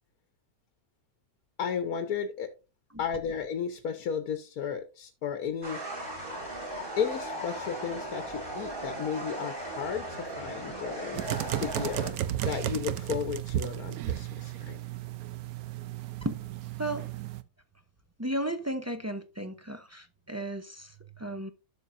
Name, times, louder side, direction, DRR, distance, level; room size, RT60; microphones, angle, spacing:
voice 1, 1.6-2.5 3.0-5.8 7.0-11.2 11.6-14.8, left 7 dB, 80° left, 1.4 m, -34 dB
sound 1, 5.6-12.1, right 1 dB, 35° right, 3.5 m, -37 dB
sound 2, 11.1-17.4, right 13 dB, 80° right, 1.1 m, -34 dB
voice 2, 18.2-21.5, right 1 dB, 20° right, 0.4 m, -34 dB
11.5 x 7.0 x 2.6 m
omnidirectional pair, 1.5 m